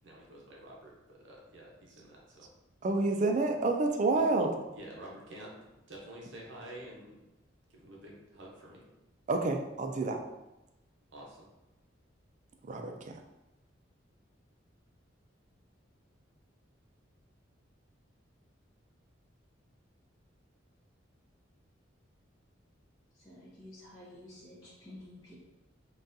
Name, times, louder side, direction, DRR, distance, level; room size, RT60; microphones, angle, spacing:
voice 1, 0.0-2.5 4.1-4.3 4.7-5.5 5.9-7.2 7.7-8.8 11.1-11.5, right 1 dB, 70° right, -3 dB, 0.7 m, -49 dB
voice 2, 2.8-4.5 9.3-10.2 12.7-13.2, right 3 dB, 40° right, 4 dB, 0.3 m, -29 dB
voice 3, 23.1-25.3, left 1 dB, 20° left, -11 dB, 0.8 m, -51 dB
3.9 x 2.3 x 2.6 m, 0.98 s
head